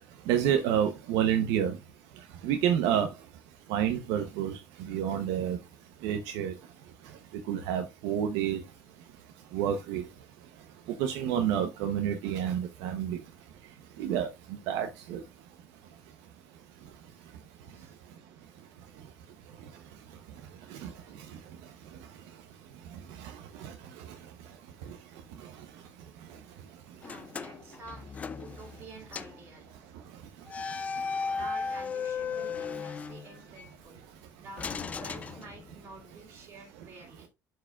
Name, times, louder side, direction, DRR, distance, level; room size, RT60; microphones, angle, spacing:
voice 1, 0.3-1.8 2.4-3.1 3.7-5.6 6.0-6.5 7.5-8.6 9.5-10.0 11.0-13.2 14.0-15.2 20.7-20.9 21.2-21.3 23.2-24.0 24.8-25.0, right 9 dB, 85° right, 0.8 m, -29 dB
voice 2, 17.7-18.3 27.0-28.1 28.4-29.8 31.3-34.1 34.4-37.3, right 4 dB, 45° right, 4.4 m, -50 dB
sound 1, 27.0-28.9 29.1-29.4 30.5-33.7 34.6-36.0, left 5 dB, 25° left, 0.4 m, -36 dB
11.5 x 4.7 x 2.4 m
cardioid pair, 145°, 6 cm